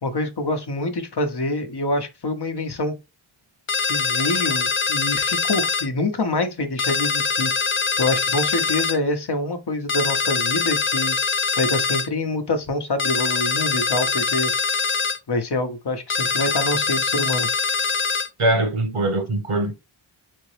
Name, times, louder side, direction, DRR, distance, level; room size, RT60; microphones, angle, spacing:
voice 1, 0.0-2.9 3.8-7.5 8.0-11.2 11.6-14.5 15.3-17.5, left 2 dB, 50° left, 0.9 m, -25 dB
sound 1, 3.7-5.9 6.8-9.0 9.9-12.1 13.0-15.2 16.1-18.3, left 5 dB, 30° left, 0.4 m, -23 dB
voice 2, 18.4-19.7, right 2 dB, 85° right, 1.3 m, -22 dB
3.6 x 2.8 x 3.2 m
wide cardioid pair, 50°, 49 cm